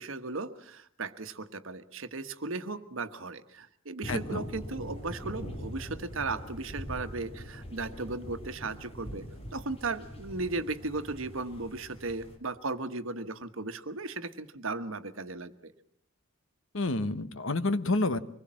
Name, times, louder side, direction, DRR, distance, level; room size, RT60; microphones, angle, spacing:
voice 1, 0.0-9.2 9.5-15.7, right 3 dB, 70° right, 10 dB, 1.4 m, -36 dB
sound 1, 4.0-12.4, equal, 30° left, 3.7 m, -43 dB
voice 2, 4.1-4.4 16.7-18.2, left 2 dB, 65° left, 13 dB, 1.2 m, -29 dB
24.5 x 20.5 x 7.6 m, 0.62 s
head